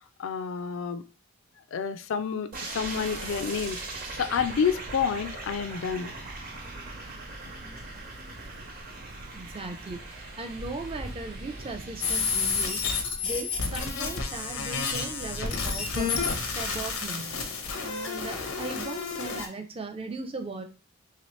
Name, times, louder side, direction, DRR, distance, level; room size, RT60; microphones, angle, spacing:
voice 1, 0.2-1.0 1.7-6.1, left 6 dB, 70° left, 0.4 m, -29 dB
sound 1, 2.5-12.8, right 3 dB, 45° right, 0.8 m, -41 dB
sound 2, 2.8-17.0, right 1 dB, 80° right, 0.8 m, -44 dB
voice 2, 9.3-12.8 13.2-16.1 16.5-17.4 17.8-20.6, right 3 dB, 25° right, 0.4 m, -38 dB
sound 3, 12.0-19.5, left 5 dB, 90° left, 0.7 m, -30 dB
3.1 x 2.9 x 3.0 m
head